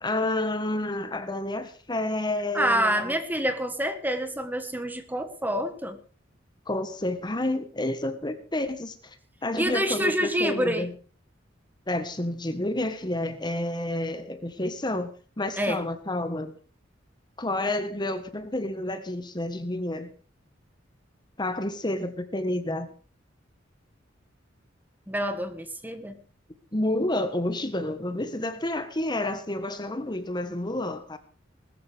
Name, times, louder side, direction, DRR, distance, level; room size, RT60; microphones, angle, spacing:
voice 1, 0.0-3.1 6.7-9.2 9.4-10.9 11.9-16.5 17.4-20.1 21.4-22.9 26.7-31.2, left 1 dB, 25° left, 1.5 m, -29 dB
voice 2, 2.5-6.0 9.6-10.9 15.6-15.8 25.1-26.2, equal, 10° right, 1.6 m, -27 dB
20.5 x 14.0 x 3.6 m
head